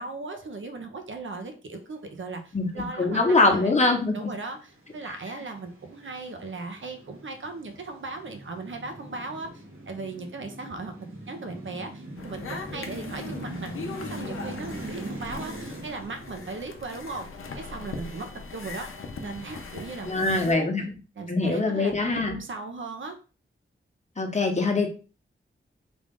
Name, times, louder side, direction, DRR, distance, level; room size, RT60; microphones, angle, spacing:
voice 1, 0.0-10.9 11.3-13.7 14.0-15.5 15.8-17.3 17.6-18.9 19.2-20.7 21.2-21.9 22.3-23.2, right 3 dB, 70° right, 5 dB, 0.7 m, -37 dB
voice 2, 3.0-4.3 20.1-20.9 21.3-22.4 24.2-24.9, left 3 dB, 35° left, 2 dB, 1.0 m, -23 dB
sound 1, 4.0-20.6, right 1 dB, 90° right, 1.2 m, -43 dB
sound 2, 12.2-20.5, left 4 dB, 80° left, 0.7 m, -40 dB
3.5 x 2.4 x 3.6 m, 0.34 s
wide cardioid pair, 70°, 21 cm